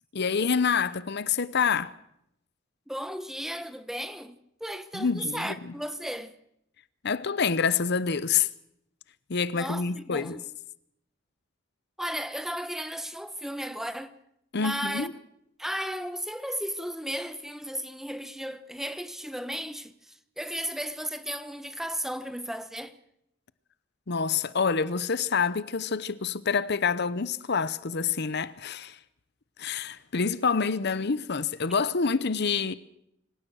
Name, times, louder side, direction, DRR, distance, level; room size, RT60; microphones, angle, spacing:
voice 1, 0.1-1.9 4.9-5.7 7.0-8.5 9.3-10.4 14.5-15.1 24.1-29.0 29.6-32.7, left 5 dB, 55° left, 0.8 m, -27 dB
voice 2, 2.9-6.3 9.5-10.4 12.0-14.1 14.6-15.1 15.6-23.0, equal, ahead, 1.1 m, -35 dB
25.5 x 16.5 x 6.3 m
head